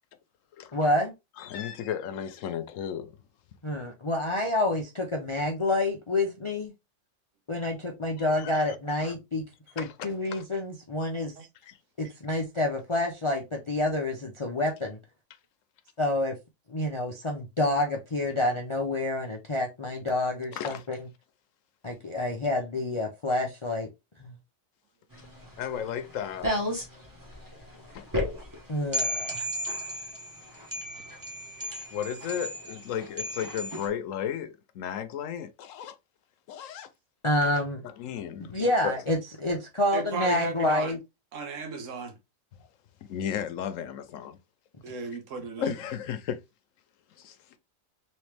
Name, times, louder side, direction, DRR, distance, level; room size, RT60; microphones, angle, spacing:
voice 1, 0.7-1.1 3.6-6.7 7.5-9.4 9.8-11.3 12.0-15.0 16.0-16.4 16.7-21.0 21.8-23.9 24.2-24.3 28.7-29.5 37.2-37.8 38.5-41.0, left 1 dB, 40° left, 0.4 m, -28 dB
voice 2, 1.4-3.1 8.2-8.5 9.0-9.1 9.8-9.9 11.6-11.8 20.6-20.8 25.6-26.6 27.9-28.1 31.9-35.9 36.5-36.9 37.8-38.6 38.8-38.9 42.6-42.7 43.0-44.4 45.6-46.4 47.2-47.4, left 9 dB, 75° left, 1.0 m, -34 dB
sound 1, 25.1-33.9, left 1 dB, 15° right, 0.9 m, -34 dB
voice 3, 39.9-41.0 41.3-42.1 44.8-45.7, right 4 dB, 70° right, 1.2 m, -35 dB
3.1 x 3.1 x 3.2 m
omnidirectional pair, 1.4 m